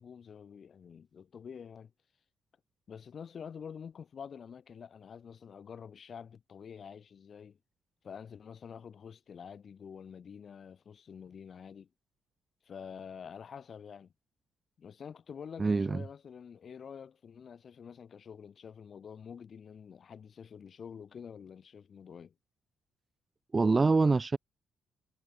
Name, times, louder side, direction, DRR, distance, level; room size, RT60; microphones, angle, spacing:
voice 1, 0.0-1.9 2.9-7.6 8.0-11.9 12.6-14.1 14.8-22.3, left 7 dB, 40° left, 4.6 m, -47 dB
voice 2, 15.6-16.0 23.5-24.4, right 3 dB, 20° right, 0.8 m, -25 dB
cardioid pair, 150°, 0 cm